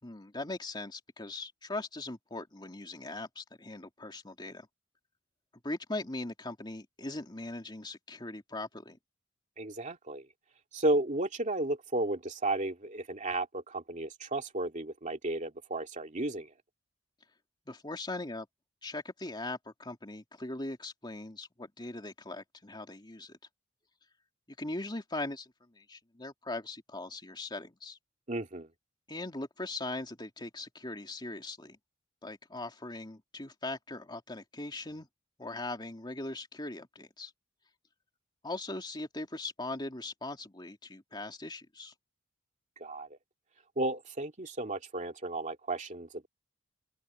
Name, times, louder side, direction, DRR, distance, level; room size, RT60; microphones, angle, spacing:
voice 1, 0.0-4.7 5.6-9.0 17.7-18.5 18.8-23.4 24.6-28.0 29.1-31.8 32.2-35.1 35.4-37.3 38.4-41.9, left 2 dB, 25° left, 2.7 m, -40 dB
voice 2, 9.6-10.2 10.7-16.5 28.3-28.7 42.8-43.1 43.8-46.3, right 2 dB, 40° right, 2.5 m, -33 dB
open air
head